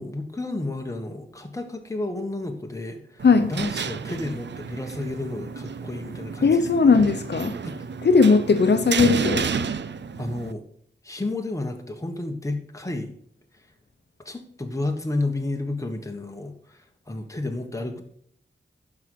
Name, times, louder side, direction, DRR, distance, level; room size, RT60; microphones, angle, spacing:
voice 1, 0.0-6.6 10.2-10.6 11.0-13.1 14.2-18.0, left 2 dB, 15° left, 4 dB, 1.3 m, -31 dB
sound 1, 3.2-10.5, right 6 dB, 80° right, 0.5 m, -31 dB
voice 2, 6.4-7.5 8.0-9.5, left 4 dB, 70° left, 8 dB, 0.8 m, -18 dB
11.5 x 4.9 x 5.9 m, 0.64 s
wide cardioid pair, 110°, 18 cm